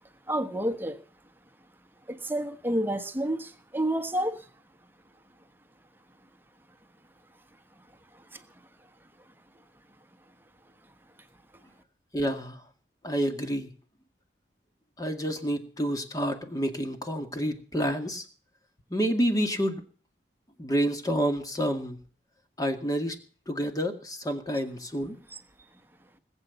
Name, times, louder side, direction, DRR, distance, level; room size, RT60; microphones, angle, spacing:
voice 1, 0.3-1.0 2.1-4.5 8.1-8.5 25.3-25.4, right 1 dB, 10° right, 9 dB, 1.3 m, -30 dB
voice 2, 12.1-12.6 13.0-13.7 15.0-18.2 18.9-19.8 20.6-22.0 22.6-23.2 23.5-25.2, equal, 20° left, 6 dB, 2.0 m, -28 dB
20.0 x 8.2 x 7.1 m, 0.42 s
head